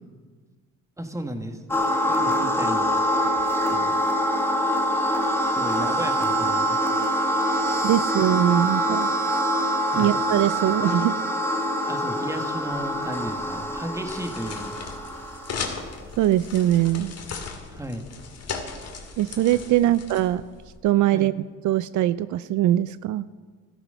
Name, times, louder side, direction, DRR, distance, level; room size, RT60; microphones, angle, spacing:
voice 1, 1.0-1.6 2.0-2.9 3.5-3.9 5.5-6.8 9.9-10.1 11.9-14.7 17.7-18.1 21.1-21.3, right 1 dB, 10° right, 5 dB, 1.7 m, -34 dB
sound 1, 1.7-15.8, equal, 10° left, 1.6 m, -24 dB
voice 2, 7.8-9.1 10.0-11.3 16.2-17.1 19.2-20.4 20.8-21.3 21.6-23.3, right 13 dB, 75° right, 16 dB, 0.5 m, -22 dB
sound 2, 12.7-20.8, left 5 dB, 55° left, 2.2 m, -37 dB
13.5 x 13.0 x 5.6 m, 1.5 s
cardioid pair, 90°, 30 cm